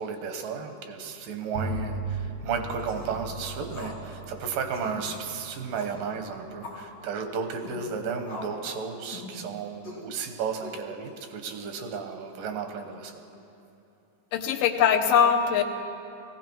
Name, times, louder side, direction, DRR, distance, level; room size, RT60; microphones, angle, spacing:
voice 1, 0.0-13.2, right 5 dB, 90° right, 6 dB, 2.8 m, -33 dB
Bowed string instrument, 1.5-7.2, right 2 dB, 65° right, 2.8 m, -38 dB
sound 1, 2.8-3.1 3.7-4.0 4.3-4.4 4.7-5.0 5.7-6.0 6.6-6.9 7.5-7.8 8.3-8.6 9.1-9.4 9.8-10.0 10.6-11.1, left 3 dB, 45° left, 4.1 m, -42 dB
voice 2, 14.3-15.6, left 7 dB, 85° left, 5 dB, 2.5 m, -21 dB
19.5 x 16.0 x 4.6 m, 2.9 s
omnidirectional pair, 3.8 m